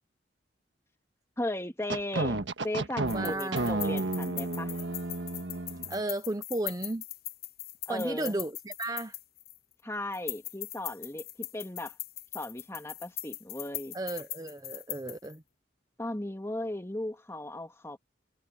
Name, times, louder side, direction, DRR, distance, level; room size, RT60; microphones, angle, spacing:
voice 1, 1.4-4.8 7.9-8.4 9.8-12.0 12.3-14.0 16.0-18.0, left 1 dB, 15° left, 2.1 m, -36 dB
sound 1, 1.9-6.0, right 2 dB, 80° right, 1.5 m, -32 dB
sound 2, 3.1-9.7 10.1-15.4, left 15 dB, 55° left, 1.2 m, -40 dB
voice 2, 3.1-3.8 5.9-7.0 7.9-9.2 13.9-15.4, right 2 dB, 20° right, 0.7 m, -34 dB
head